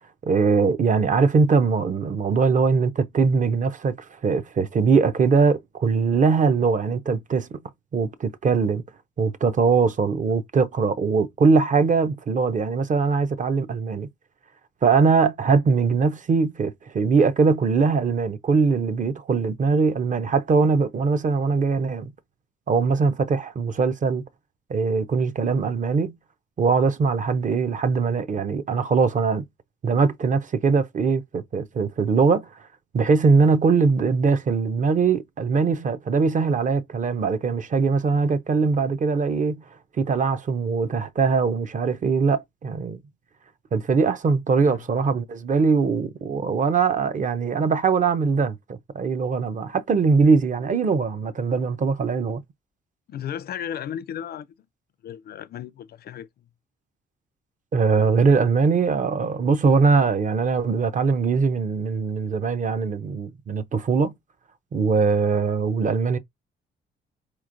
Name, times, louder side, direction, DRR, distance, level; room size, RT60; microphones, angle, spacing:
voice 1, 0.2-7.6 7.9-8.8 9.2-14.1 14.8-22.1 22.7-24.2 24.7-26.1 26.6-29.5 29.8-32.5 32.9-39.6 40.0-43.0 43.7-52.4 57.7-64.1 64.7-66.2, right 5 dB, 40° right, 0.6 m, -21 dB
voice 2, 53.1-54.5 55.0-56.3, left 9 dB, 55° left, 0.4 m, -34 dB
4.3 x 3.0 x 2.5 m
cardioid pair, 90°, 20 cm